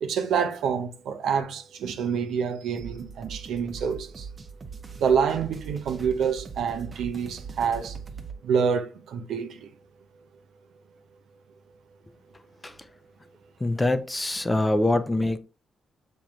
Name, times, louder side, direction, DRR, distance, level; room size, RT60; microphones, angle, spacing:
voice 1, 0.0-4.3 5.0-8.0 8.4-9.7, right 6 dB, 70° right, 0.6 m, -27 dB
sound 1, 2.8-8.4, right 5 dB, 40° right, 0.8 m, -41 dB
voice 2, 13.6-15.4, left 2 dB, 20° left, 0.5 m, -24 dB
7.0 x 3.0 x 2.4 m
hypercardioid pair, 40°, 0 cm